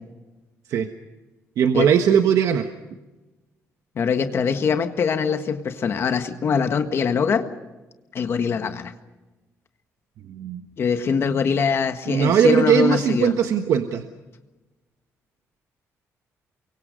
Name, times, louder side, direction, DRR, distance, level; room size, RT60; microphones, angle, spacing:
voice 1, 1.6-2.7 10.3-10.6 12.1-14.0, right 8 dB, 75° right, 6 dB, 1.4 m, -19 dB
voice 2, 3.9-7.4 8.1-8.9 10.8-13.3, left 6 dB, 45° left, 7 dB, 1.6 m, -23 dB
29.5 x 24.0 x 5.3 m, 1.1 s
cardioid pair, 140°, 6 cm